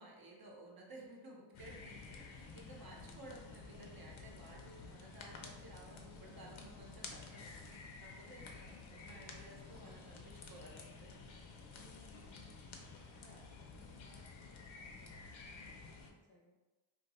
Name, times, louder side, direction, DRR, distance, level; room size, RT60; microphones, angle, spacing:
voice 1, 0.0-11.3, right 1 dB, 50° right, -2 dB, 0.7 m, -56 dB
sound 1, 1.5-16.1, left 4 dB, 75° left, 0.6 m, -52 dB
voice 2, 2.7-3.4 8.4-9.0 11.7-12.5 12.8-16.6, left 3 dB, 25° left, -3 dB, 0.6 m, -66 dB
Male speech man speaking, 5.5-7.7 8.7-10.6 11.5-13.5, right 1 dB, 10° right, 0.7 m, -68 dB
2.7 x 2.2 x 4.0 m, 1.2 s
wide cardioid pair, 140°, 48 cm